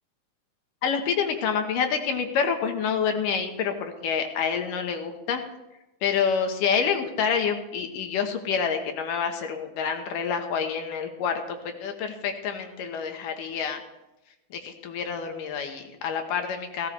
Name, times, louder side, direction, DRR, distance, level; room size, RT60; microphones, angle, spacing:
voice 1, 0.8-5.4 6.0-13.8 14.5-16.9, left 6 dB, 75° left, 5 dB, 2.9 m, -27 dB
16.5 x 16.0 x 3.3 m, 0.97 s
omnidirectional pair, 3.9 m